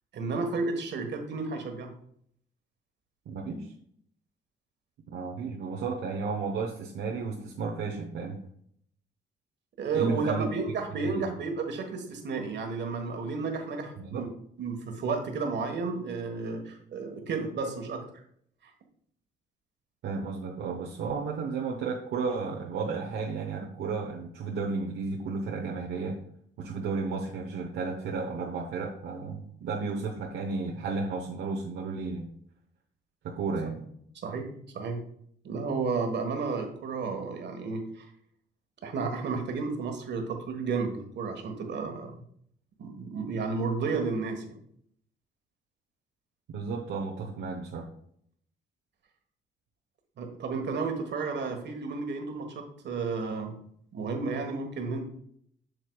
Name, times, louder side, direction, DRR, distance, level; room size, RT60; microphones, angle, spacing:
voice 1, 0.1-1.9 9.8-14.3 14.6-18.0 18.6-18.7 34.2-34.5 34.7-35.0 35.4-38.1 38.8-42.1 42.8-44.6 50.2-53.5 53.9-55.0, right 4 dB, 60° right, 4 dB, 1.4 m, -32 dB
voice 2, 3.3-3.7 5.1-8.4 9.9-10.5 11.0-11.2 14.0-14.3 20.0-26.2 26.6-32.3 33.2-33.8 46.5-47.9, right 4 dB, 75° right, -1 dB, 1.0 m, -33 dB
7.9 x 6.6 x 2.3 m, 0.66 s
cardioid pair, 90°, 20 cm